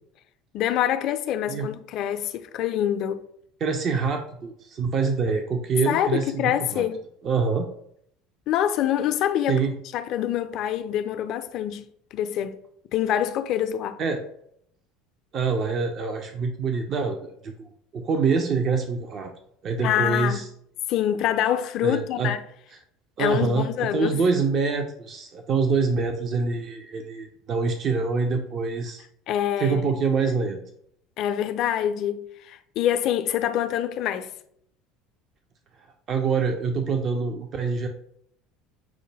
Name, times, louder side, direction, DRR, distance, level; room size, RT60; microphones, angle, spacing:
voice 1, 0.5-3.2 5.8-7.0 8.5-9.6 9.9-12.6 12.9-14.0 19.8-20.4 20.9-22.4 23.2-24.2 29.3-29.9 31.2-34.3, left 10 dB, 55° left, 0.4 m, -25 dB
voice 2, 3.6-6.9 7.2-7.7 9.5-9.7 14.0-14.2 15.3-17.7 17.9-19.3 19.6-20.5 21.8-22.3 23.2-23.7 23.9-29.0 29.6-30.6 36.1-37.9, right 4 dB, 45° right, 0.5 m, -25 dB
6.1 x 2.2 x 3.3 m
hypercardioid pair, 70°, 0 cm